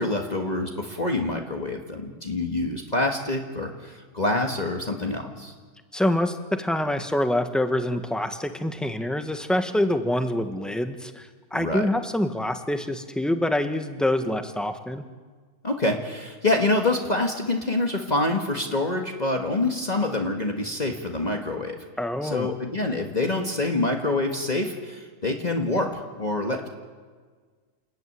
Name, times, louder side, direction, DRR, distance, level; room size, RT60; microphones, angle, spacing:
voice 1, 0.0-5.5 11.6-11.9 15.6-21.8 22.2-26.7, left 2 dB, 30° left, 2 dB, 1.8 m, -26 dB
voice 2, 5.9-15.0 22.0-22.5, left 1 dB, ahead, 7 dB, 1.3 m, -26 dB
28.5 x 12.0 x 9.4 m, 1.5 s
omnidirectional pair, 1.4 m